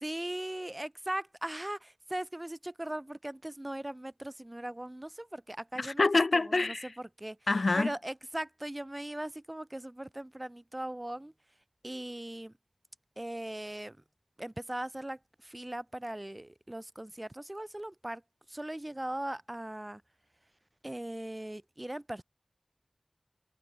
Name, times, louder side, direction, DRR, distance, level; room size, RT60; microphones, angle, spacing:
voice 1, 0.0-6.0 6.6-6.9 7.2-7.4 7.8-11.3 11.8-12.5 13.2-14.0 14.4-18.2 18.5-20.0 20.8-22.2, right 1 dB, 25° right, 0.5 m, -39 dB
voice 2, 5.8-6.9 7.5-7.9, left 3 dB, 75° left, 0.4 m, -26 dB
wide cardioid pair, 65°, 0 cm